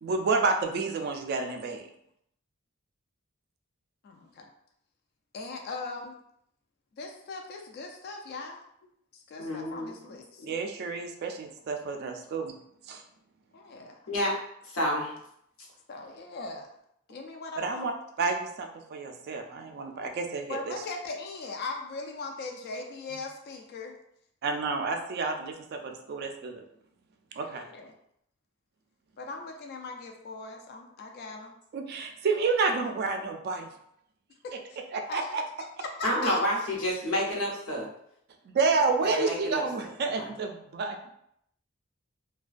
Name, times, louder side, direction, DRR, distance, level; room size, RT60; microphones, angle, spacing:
voice 1, 0.0-1.9 10.4-12.5 12.9-13.0 17.6-17.9 18.2-20.7 24.4-26.6 27.4-27.6 31.7-33.7 34.9-35.4 38.5-41.1, right 4 dB, 50° right, 4 dB, 0.3 m, -30 dB
voice 2, 4.0-4.5 5.3-6.2 6.9-8.6 9.1-10.5 13.5-14.0 15.9-16.7 17.1-17.9 20.5-23.9 27.5-28.0 29.2-31.5 34.4-34.8 35.1-35.3 35.8-36.4, left 3 dB, 50° left, 2 dB, 0.3 m, -39 dB
voice 3, 9.4-9.9 10.4-10.5 14.1-14.3 14.6-15.1 36.0-37.9 39.2-39.6 40.2-40.3, equal, 85° left, -3 dB, 0.8 m, -29 dB
2.3 x 2.2 x 2.4 m, 0.73 s
head